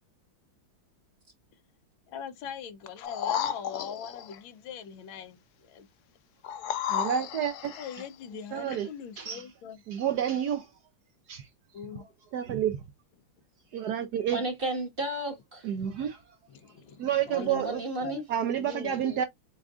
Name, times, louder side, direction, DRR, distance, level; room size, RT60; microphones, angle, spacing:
voice 1, 2.1-5.9 7.8-9.8 11.7-12.0 16.5-17.7 18.0-18.2 18.6-19.2, left 7 dB, 90° left, 1.5 m, -42 dB
sound 1, 3.0-4.4 6.4-8.1 8.7-8.8, left 9 dB, 65° left, 1.0 m, -33 dB
voice 2, 6.9-7.8 8.5-8.9 9.2-9.4 9.9-10.7 11.3-11.5 12.3-12.8 13.7-14.4 15.6-16.2 17.0-17.8 18.3-19.2, right 9 dB, 70° right, 1.0 m, -29 dB
voice 3, 14.3-15.7 17.3-18.2, right 1 dB, 30° right, 1.2 m, -33 dB
7.1 x 2.4 x 2.4 m
omnidirectional pair, 2.1 m